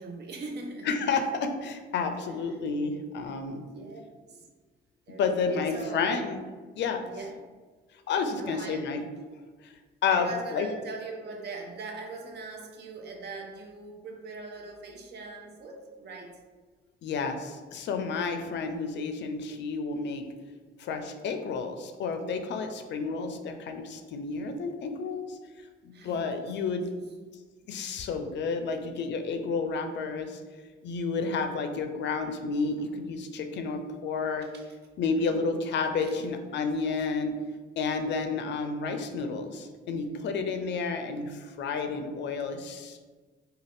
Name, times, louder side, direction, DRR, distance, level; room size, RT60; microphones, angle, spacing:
voice 1, 0.0-1.0 2.3-2.6 3.4-4.0 4.3-4.5 5.1-6.1 7.0-7.4 8.1-8.9 10.1-16.4 25.9-26.9 32.8-33.0 34.4-34.7 35.1-35.5 36.0-36.3, right 3 dB, 55° right, 3 dB, 0.6 m, -42 dB
voice 2, 0.8-3.6 5.2-6.4 6.7-7.0 8.1-9.0 9.6-9.7 10.0-10.7 17.0-20.3 20.8-25.4 25.8-26.9 27.7-30.4 30.8-34.5 35.0-37.3 37.8-43.0, left 4 dB, 65° left, 7 dB, 0.4 m, -31 dB
2.5 x 2.3 x 3.3 m, 1.4 s
cardioid pair, 90°, 20 cm